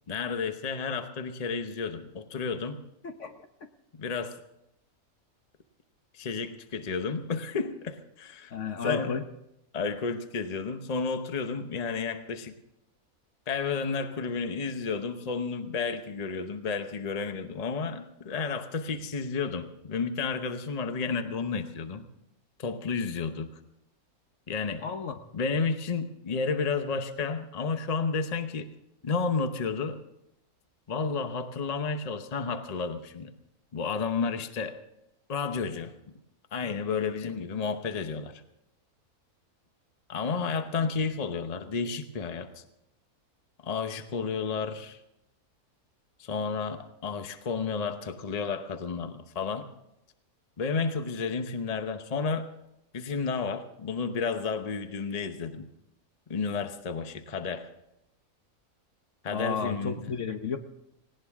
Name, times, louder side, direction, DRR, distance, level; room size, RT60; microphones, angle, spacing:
voice 1, 0.1-2.8 4.0-4.4 6.1-8.5 8.8-9.1 9.7-12.6 13.5-22.1 22.6-23.6 24.5-24.9 25.3-28.7 29.0-30.0 30.9-33.3 33.7-34.8 35.3-35.9 36.5-38.4 40.1-42.6 43.6-45.0 46.2-49.6 50.6-52.5 52.9-55.7 56.3-57.7 59.2-60.1, left 5 dB, 30° left, 8 dB, 0.8 m, -31 dB
voice 2, 8.5-9.2 24.8-25.2 59.3-60.6, left 6 dB, 55° left, 7 dB, 1.1 m, -32 dB
18.5 x 18.0 x 3.6 m, 0.84 s
omnidirectional pair, 1.6 m